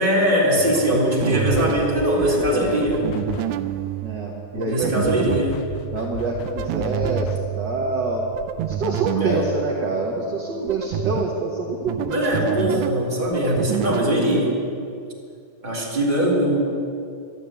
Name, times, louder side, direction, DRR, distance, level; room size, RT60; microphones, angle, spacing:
voice 1, 0.0-3.0 4.5-5.6 9.1-9.4 12.1-14.6 15.6-16.8, equal, 15° right, -5 dB, 3.0 m, -21 dB
sound 1, 0.6-14.1, right 12 dB, 80° right, 1.7 m, -29 dB
voice 2, 0.7-1.0 1.3-2.8 4.0-5.2 5.9-8.2 8.8-12.2 12.7-12.9, right 3 dB, 50° right, -3 dB, 1.5 m, -26 dB
sound 2, 1.5-3.8 5.0-7.7, left 6 dB, 75° left, 2.0 m, -35 dB
12.0 x 12.0 x 8.2 m, 2.4 s
omnidirectional pair, 3.6 m